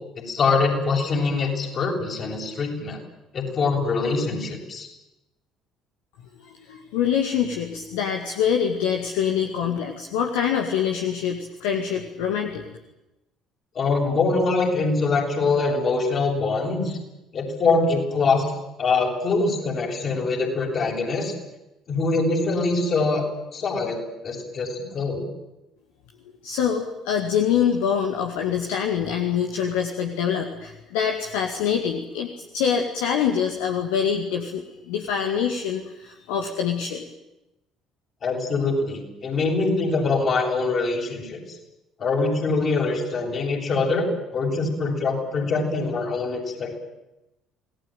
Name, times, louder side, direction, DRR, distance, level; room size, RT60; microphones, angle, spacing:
voice 1, 0.2-3.0 3.3-4.9 13.7-17.0 17.3-18.5 18.8-21.3 21.9-23.2 23.5-24.0 24.2-25.2 38.2-41.4 42.0-46.8, left 3 dB, 40° left, 1 dB, 7.9 m, -23 dB
voice 2, 6.4-12.6 26.4-37.0, left 8 dB, 65° left, 3 dB, 2.2 m, -25 dB
27.5 x 19.0 x 9.3 m, 0.94 s
figure-of-eight pair, 55°, 0 cm